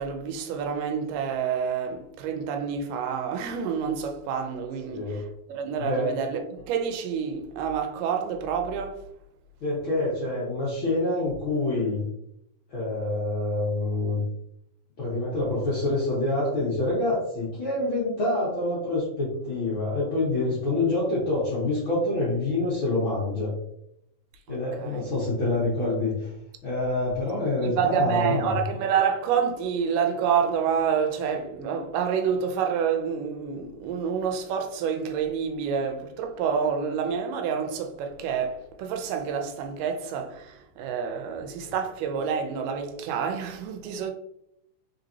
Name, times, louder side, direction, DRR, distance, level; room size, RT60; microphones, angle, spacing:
voice 1, 0.0-9.0 24.8-25.0 27.6-44.1, right 7 dB, 85° right, 2.3 m, -28 dB
voice 2, 4.9-5.2 5.8-6.1 9.6-12.0 12.7-14.2 15.0-23.5 24.5-26.3 26.6-28.5, left 2 dB, 50° left, 1.6 m, -26 dB
4.8 x 3.9 x 2.7 m
omnidirectional pair, 3.7 m